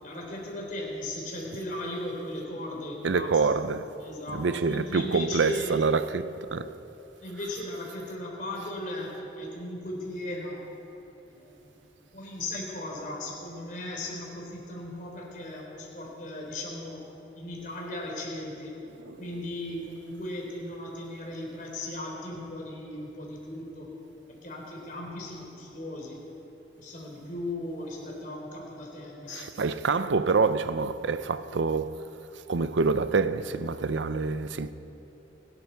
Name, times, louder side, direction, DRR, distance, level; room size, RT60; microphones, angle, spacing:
voice 1, 0.0-3.3 4.0-5.8 7.2-10.6 11.3-11.8 12.1-17.1 17.4-18.7 19.2-23.9 24.4-26.2 26.8-29.5, left 1 dB, 45° left, 3.8 m, -37 dB
voice 2, 3.0-4.0 4.3-6.8 19.0-19.2 29.3-32.1 32.5-34.7, right 4 dB, 90° right, 0.6 m, -27 dB
26.5 x 11.5 x 4.6 m
head